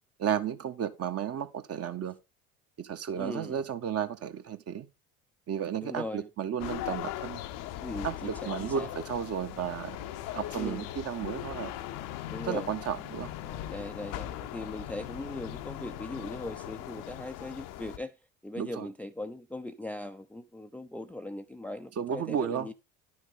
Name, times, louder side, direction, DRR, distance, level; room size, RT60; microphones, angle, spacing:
voice 1, 0.2-2.2 2.8-4.9 5.5-7.4 8.0-10.0 10.3-11.8 12.4-13.3 18.6-18.9 22.0-22.7, right 8 dB, 35° right, 1.2 m, -33 dB
voice 2, 3.1-3.6 5.8-6.3 7.8-8.9 10.5-10.9 12.3-12.7 13.4-18.1 18.4-22.7, left 1 dB, 5° left, 0.6 m, -39 dB
sound 1, 6.6-18.0, left 13 dB, 50° left, 0.9 m, -39 dB
11.0 x 6.4 x 3.6 m
figure-of-eight pair, 60°, 41 cm